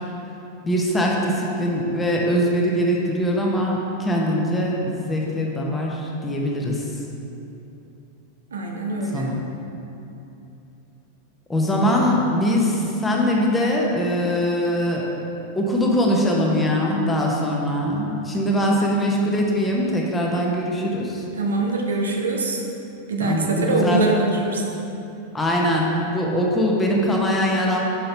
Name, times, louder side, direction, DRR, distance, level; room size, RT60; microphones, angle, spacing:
voice 1, 0.6-6.9 9.1-9.4 11.5-15.1 15.5-21.2 23.2-24.1 25.3-27.8, equal, 10° left, -2 dB, 1.0 m, -22 dB
voice 2, 8.5-9.3 18.6-18.7 21.4-22.6 23.1-24.7, right 2 dB, 70° right, 1 dB, 0.7 m, -23 dB
5.8 x 5.3 x 4.4 m, 2.9 s
figure-of-eight pair, 90°, 0 cm